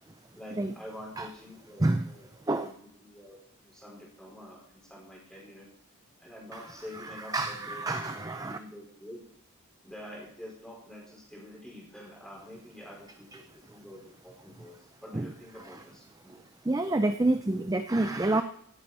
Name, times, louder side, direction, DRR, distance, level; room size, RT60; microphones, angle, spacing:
voice 1, 0.3-5.7 6.2-9.2 9.8-16.4, left 1 dB, 5° left, -4 dB, 4.7 m, -47 dB
voice 2, 1.8-2.1 2.5-2.7 6.9-8.6 15.1-15.3 15.6-15.8 16.7-18.4, right 2 dB, 15° right, 8 dB, 0.4 m, -28 dB
18.0 x 8.8 x 4.3 m, 0.65 s
head